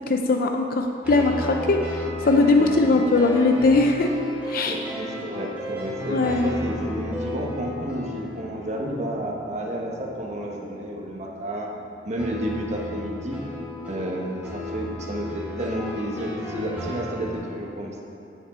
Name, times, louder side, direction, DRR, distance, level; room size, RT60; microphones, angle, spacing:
voice 1, 0.1-4.1 4.5-4.8 6.1-6.5, left 3 dB, 55° left, 4 dB, 0.4 m, -20 dB
sound 1, 1.0-11.3 11.6-17.4, left 1 dB, 10° right, 2.1 m, -35 dB
voice 2, 2.6-3.0 4.6-11.7 12.0-13.4 13.9-18.0, right 1 dB, 40° right, -1 dB, 1.1 m, -31 dB
8.3 x 6.8 x 4.3 m, 2.8 s
head